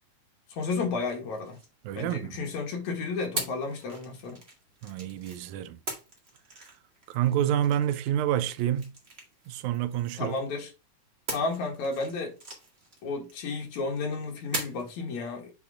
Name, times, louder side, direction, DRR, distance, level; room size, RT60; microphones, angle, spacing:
voice 1, 0.5-1.6 2.0-4.4 10.2-10.7 11.3-12.3 13.0-15.5, left 4 dB, 65° left, 3.0 m, -32 dB
sound 1, 1.0-2.5 3.4-5.4 5.9-10.5 11.3-13.8 14.5-15.0, right 2 dB, 25° right, 1.5 m, -41 dB
voice 2, 1.8-2.4 4.8-5.8 7.1-8.9 9.5-10.4, right 11 dB, 80° right, 2.0 m, -28 dB
7.1 x 4.5 x 3.6 m
omnidirectional pair, 3.6 m